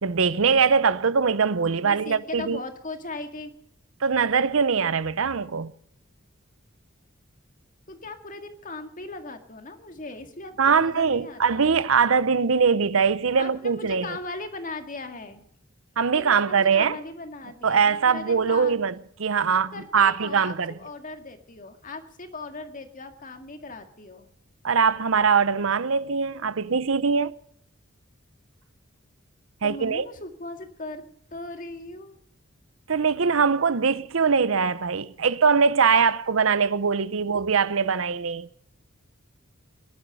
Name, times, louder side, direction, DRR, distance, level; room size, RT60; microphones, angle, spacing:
voice 1, 0.0-2.6 4.0-5.7 10.6-14.1 16.0-17.0 17.6-18.9 19.2-20.8 24.6-27.3 29.6-30.1 32.9-38.5, right 5 dB, 80° right, 0.7 m, -22 dB
voice 2, 1.8-3.5 7.9-11.7 13.4-15.4 16.1-18.8 19.5-24.3 29.6-31.0 31.3-32.2, left 2 dB, 40° left, 2.1 m, -38 dB
22.5 x 11.0 x 5.4 m
head